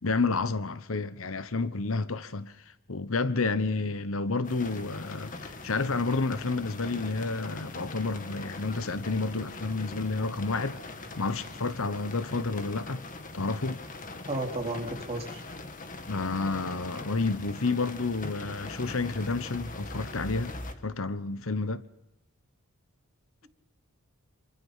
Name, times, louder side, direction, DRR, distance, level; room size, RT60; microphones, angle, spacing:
voice 1, 0.0-10.8 11.2-13.0 13.3-13.8 16.1-20.5 20.8-21.8, left 3 dB, 65° left, 1.1 m, -30 dB
sound 1, 4.4-20.7, left 2 dB, 40° left, 2.1 m, -41 dB
voice 2, 14.3-15.4, right 2 dB, 30° right, 4.3 m, -33 dB
27.0 x 24.5 x 5.7 m
head